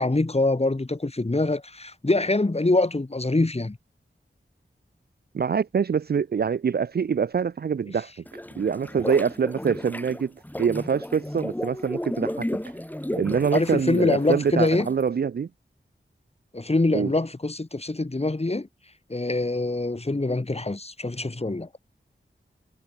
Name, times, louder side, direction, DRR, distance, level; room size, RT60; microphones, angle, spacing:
voice 1, 0.0-3.8 13.5-14.9 16.5-18.7 19.1-21.7, left 2 dB, 30° left, 2.3 m, -24 dB
voice 2, 5.3-8.1 8.6-10.3 10.6-12.5 13.1-15.5 16.9-17.1, right 6 dB, 55° right, 0.4 m, -25 dB
sound 1, 8.3-15.0, left 1 dB, 10° left, 1.6 m, -34 dB
wide cardioid pair, 50°, 20 cm